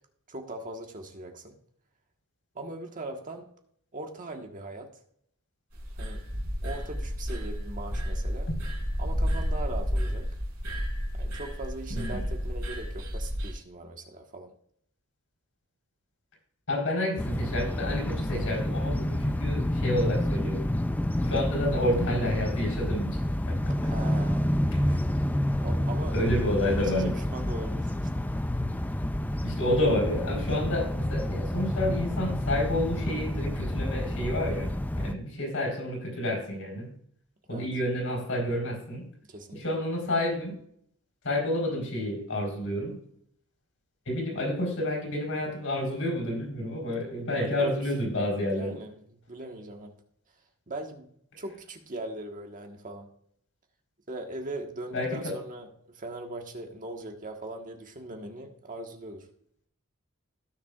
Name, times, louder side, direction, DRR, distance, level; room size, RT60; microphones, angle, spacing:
voice 1, 0.3-1.6 2.5-3.5 3.9-4.9 6.0-6.3 6.6-8.5 9.0-10.3 11.1-14.5 23.8-24.5 25.1-25.2 25.6-26.2 26.6-28.2 37.5-37.7 39.3-39.6 47.0-47.8 48.5-50.0 50.7-53.1 54.1-59.3, right 2 dB, 35° right, 3 dB, 1.5 m, -40 dB
sound 1, 5.7-13.5, equal, 85° right, 4.2 m, -31 dB
voice 2, 16.7-20.6 21.2-23.2 24.7-25.0 26.1-27.1 29.4-36.9 37.5-39.0 39.5-40.6 41.2-43.0 44.1-48.7 54.9-55.3, left 1 dB, 60° left, 0 dB, 4.5 m, -29 dB
sound 2, 17.2-35.1, left 1 dB, 5° left, 0.4 m, -29 dB
17.5 x 7.1 x 2.5 m, 0.65 s
head